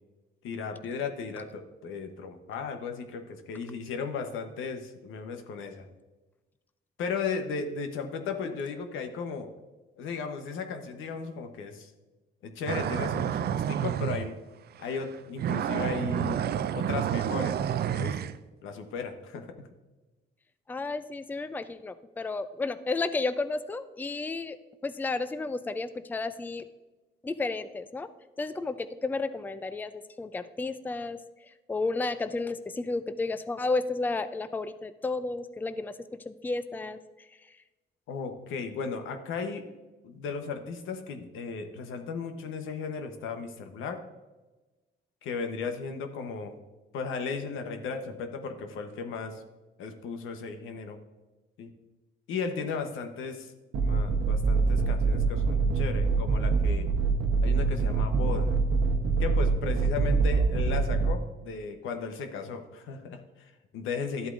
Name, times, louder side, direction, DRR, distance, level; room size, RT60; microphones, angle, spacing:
voice 1, 0.4-5.9 7.0-9.5 10.0-11.9 12.4-14.4 14.8-17.6 17.9-18.2 18.6-19.5 38.1-39.6 40.0-44.0 45.2-46.5 46.9-49.4 49.8-51.0 51.6-51.7 52.3-53.5 53.8-56.9 57.4-58.5 59.2-64.3, left 5 dB, 85° left, 6 dB, 1.0 m, -35 dB
sound 1, 12.7-14.3 14.8-15.1 15.4-18.4, right 10 dB, 55° right, 0.4 m, -29 dB
voice 2, 20.7-24.6 24.8-26.7 27.2-28.1 28.4-31.2 31.7-35.9 36.3-37.0, left 3 dB, 10° left, 12 dB, 0.4 m, -32 dB
sound 2, 53.7-61.1, right 4 dB, 75° right, 1.0 m, -25 dB
12.0 x 8.0 x 2.5 m, 1.1 s
cardioid pair, 90°, 20 cm